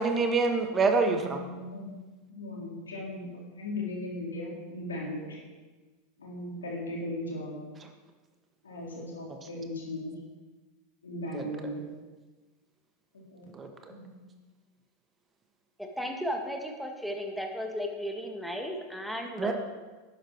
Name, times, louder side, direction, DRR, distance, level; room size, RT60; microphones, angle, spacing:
voice 1, 0.0-1.4 11.3-11.4 13.5-13.7 19.4-19.5, right 4 dB, 25° right, 5 dB, 1.6 m, -26 dB
voice 2, 1.1-1.9 2.3-5.4 6.2-7.6 8.6-10.2 11.0-11.9 13.1-13.5 13.9-14.1, left 1 dB, 85° left, -3 dB, 3.7 m, -37 dB
voice 3, 15.8-19.5, equal, ahead, 2 dB, 1.8 m, -35 dB
11.5 x 9.8 x 4.7 m, 1.3 s
hypercardioid pair, 85°, 0 cm